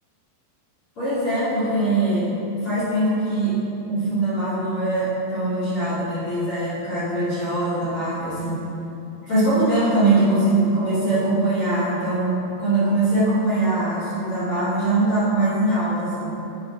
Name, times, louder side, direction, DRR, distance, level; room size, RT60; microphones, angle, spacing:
voice 1, 1.0-2.3 2.6-3.6 3.9-8.6 9.2-16.3, right 2 dB, 45° left, -12 dB, 1.8 m, -22 dB
8.9 x 5.3 x 4.8 m, 2.9 s
omnidirectional pair, 5.5 m